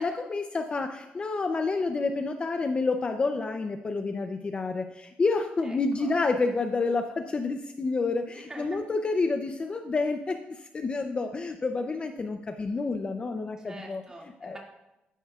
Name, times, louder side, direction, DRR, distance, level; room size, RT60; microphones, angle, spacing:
voice 1, 0.0-14.0 14.4-14.6, left 3 dB, 30° left, 6 dB, 0.5 m, -29 dB
voice 2, 5.6-6.1 8.3-8.8 13.6-14.6, right 2 dB, 20° right, -1 dB, 2.2 m, -44 dB
12.5 x 10.0 x 2.4 m, 0.92 s
cardioid pair, 125°, 4 cm